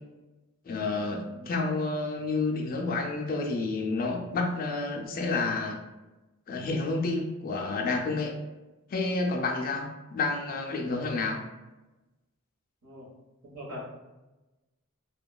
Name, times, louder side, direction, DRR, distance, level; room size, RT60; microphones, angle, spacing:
voice 1, 0.7-5.8 6.5-8.4 8.9-11.4, left 3 dB, 40° left, 2 dB, 0.4 m, -30 dB
voice 2, 13.4-13.8, left 1 dB, 75° right, -6 dB, 1.2 m, -42 dB
2.9 x 2.2 x 2.2 m, 1.1 s
head